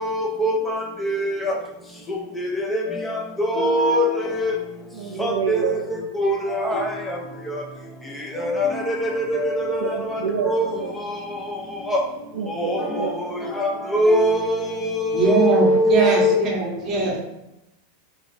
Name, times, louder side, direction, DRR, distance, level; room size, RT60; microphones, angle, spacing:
voice 1, 0.0-0.5 1.0-1.3 3.5-4.1 4.4-4.5 5.2-5.6 6.2-6.4 6.6-6.8 8.4-8.7 9.1-9.7 10.5-10.7 13.6-13.7 13.9-16.3, equal, 5° left, 0 dB, 0.6 m, -20 dB
voice 2, 4.9-5.9 9.8-10.9 12.3-13.5, right 6 dB, 80° right, 3 dB, 0.3 m, -28 dB
voice 3, 15.1-17.2, right 3 dB, 30° right, -2 dB, 0.9 m, -21 dB
3.1 x 2.3 x 4.0 m, 0.90 s
supercardioid pair, 155°, 0 cm